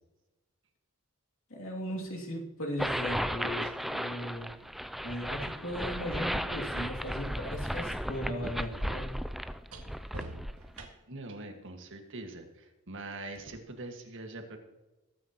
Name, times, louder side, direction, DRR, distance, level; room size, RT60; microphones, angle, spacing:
voice 1, 1.5-4.5 5.0-9.1, equal, 65° left, -1 dB, 2.7 m, -37 dB
sound 1, 2.1-2.2 3.2-7.3 7.5-11.3 13.3-13.6, right 2 dB, 85° right, 1.9 m, -52 dB
sound 2, 2.8-10.9, equal, ahead, 0.3 m, -35 dB
voice 2, 11.1-14.6, right 2 dB, 60° right, 4 dB, 1.8 m, -43 dB
21.0 x 9.4 x 3.0 m, 1.1 s
head